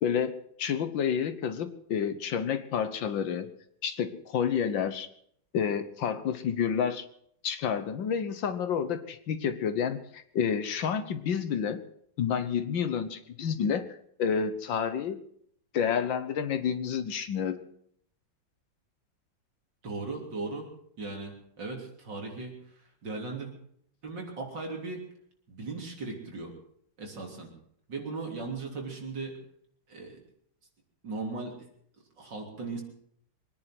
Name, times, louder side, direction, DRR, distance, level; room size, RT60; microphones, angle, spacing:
voice 1, 0.0-3.5 3.8-5.1 5.5-7.1 7.4-11.8 12.2-15.2 15.7-17.6, left 7 dB, 65° left, 11 dB, 1.7 m, -29 dB
voice 2, 19.8-20.7 21.0-22.5 23.0-23.5 24.0-25.0 25.5-26.5 27.0-27.5 27.9-29.4 29.9-30.2 31.0-31.7 32.2-32.8, right 3 dB, 55° right, 1 dB, 4.0 m, -37 dB
23.5 x 10.0 x 6.0 m, 0.67 s
omnidirectional pair, 2.3 m